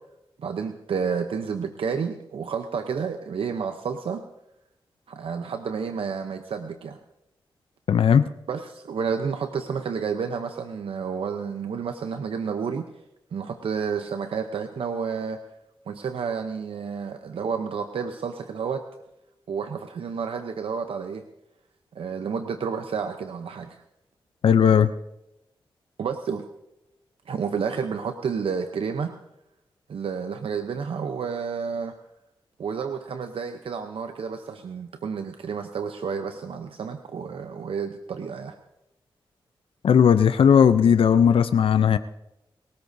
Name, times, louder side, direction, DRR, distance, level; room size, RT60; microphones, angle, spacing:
voice 1, 0.4-4.2 5.1-7.0 8.5-12.9 13.3-15.4 15.9-18.8 19.5-21.2 21.9-23.8 26.0-26.5 27.3-29.1 29.9-31.9 32.6-38.5, right 6 dB, 80° right, 7 dB, 0.7 m, -30 dB
voice 2, 7.9-8.2 24.4-24.9 39.8-42.0, left 7 dB, 80° left, 11 dB, 0.5 m, -17 dB
29.5 x 13.5 x 2.7 m, 0.87 s
cardioid pair, 55°, 9 cm